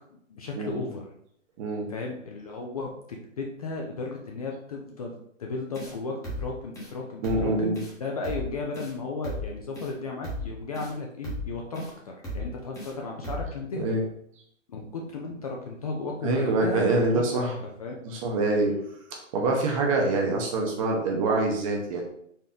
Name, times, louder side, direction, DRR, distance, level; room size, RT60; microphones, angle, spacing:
voice 1, 0.1-1.1 1.9-13.9 14.7-16.8 17.1-17.5 17.8-18.0, left 3 dB, 30° left, 0 dB, 0.5 m, -35 dB
voice 2, 1.6-1.9 7.2-7.8 13.8-14.0 16.2-17.5 18.0-18.7 19.1-22.0, right 2 dB, 25° right, 1 dB, 0.9 m, -25 dB
sound 1, 5.7-5.9 6.2-6.5 6.7-6.9 7.2-7.5 7.7-7.9 8.2-8.5 8.7-8.9 9.2-9.5 9.7-9.9 10.2-10.5 10.7-10.9 11.2-11.5 11.7-11.9 12.2-12.5 12.7-12.9 13.2-13.5, left 1 dB, 10° left, 1.0 m, -35 dB
4.3 x 3.1 x 3.7 m, 0.70 s
hypercardioid pair, 140°, 38 cm